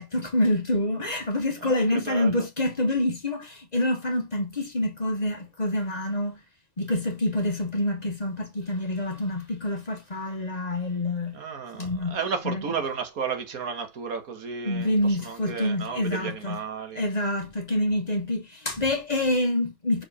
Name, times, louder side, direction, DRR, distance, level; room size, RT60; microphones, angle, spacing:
voice 1, 0.0-6.4 6.8-11.4 11.7-12.2 12.4-12.6 14.6-16.6 16.9-20.0, left 1 dB, 30° left, 1.2 m, -27 dB
voice 2, 1.6-2.4 11.3-17.0, right 6 dB, 85° right, 1.8 m, -33 dB
5.9 x 4.8 x 4.2 m
omnidirectional pair, 1.5 m